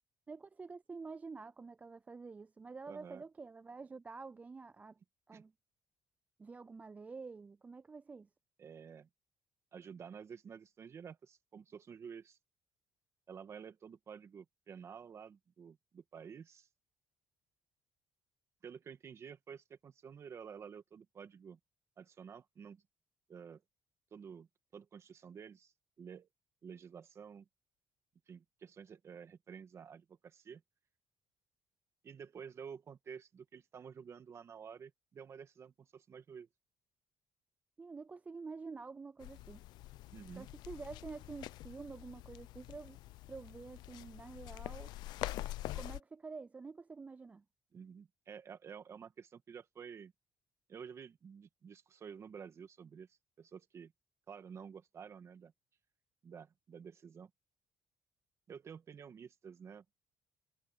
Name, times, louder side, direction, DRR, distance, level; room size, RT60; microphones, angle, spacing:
voice 1, 0.3-5.0 5.3-5.5 6.4-8.3 37.8-39.6 40.4-43.0 43.3-44.9 45.7-47.4, right 4 dB, 20° right, 0.3 m, -48 dB
voice 2, 2.9-3.2 5.3-5.4 8.6-9.1 9.7-12.4 13.3-16.7 18.6-21.6 22.0-22.8 23.3-23.6 24.1-26.3 26.6-27.5 28.3-30.6 32.0-36.5 40.1-40.5 47.7-50.1 50.7-53.9 54.3-55.5 56.2-57.3 58.5-59.8, right 7 dB, 40° right, 1.8 m, -51 dB
sound 1, 39.2-46.0, left 16 dB, 85° left, 0.6 m, -45 dB
cardioid pair, 125°, 7 cm